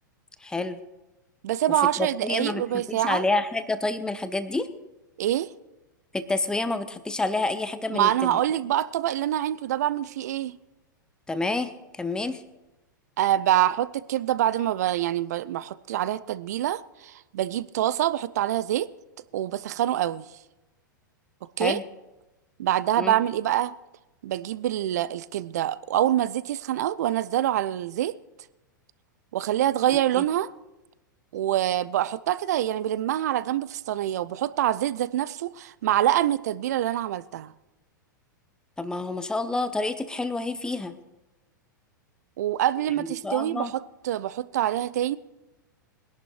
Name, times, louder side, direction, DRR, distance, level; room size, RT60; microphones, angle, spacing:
voice 1, 0.4-0.8 2.0-4.7 6.1-8.4 11.3-12.4 21.6-21.8 23.0-23.1 30.2-30.3 38.8-40.9 43.2-43.7, left 2 dB, 5° left, 0.9 m, -28 dB
voice 2, 1.4-3.2 5.2-5.5 7.9-10.6 13.2-18.9 19.3-20.3 21.6-21.8 22.6-23.7 24.2-28.1 29.3-30.5 31.3-37.5 42.4-45.2, right 12 dB, 55° right, 0.5 m, -25 dB
23.0 x 11.0 x 3.2 m
figure-of-eight pair, 95°, 11 cm